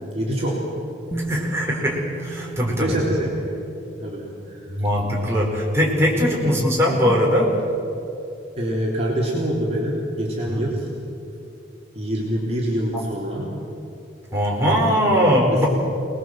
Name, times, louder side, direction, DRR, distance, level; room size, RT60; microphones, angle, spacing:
voice 1, 0.1-0.7 2.8-3.3 4.0-4.6 6.4-6.6 8.6-10.9 11.9-13.5 15.5-15.7, equal, 35° right, -4 dB, 3.7 m, -25 dB
Bass guitar, 1.1-5.0 6.2-6.3, right 3 dB, 15° left, 1.7 m, -37 dB
voice 2, 1.1-2.9 4.7-7.6 10.5-10.6 14.3-15.7, equal, 15° right, -3 dB, 4.7 m, -20 dB
27.0 x 20.0 x 7.7 m, 2.8 s
head